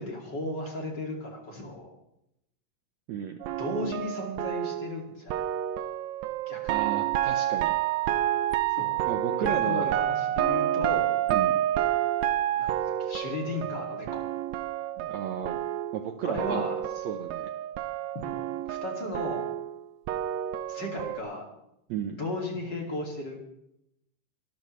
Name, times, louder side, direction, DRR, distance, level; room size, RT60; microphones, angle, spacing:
voice 1, 0.0-1.9 3.6-5.4 6.5-6.8 8.7-11.1 12.5-14.3 16.2-16.8 18.1-19.5 20.7-21.5 22.2-23.4, left 2 dB, 35° left, 0 dB, 2.6 m, -35 dB
sound 1, 3.4-16.1 16.4-21.2, right 12 dB, 85° right, 1.5 m, -29 dB
voice 2, 6.7-7.7 9.0-10.0 11.3-11.6 15.0-15.6 15.9-16.7 17.1-17.5 21.9-22.2, right 8 dB, 70° right, 6 dB, 1.8 m, -33 dB
23.0 x 13.5 x 3.2 m, 0.81 s
omnidirectional pair, 3.9 m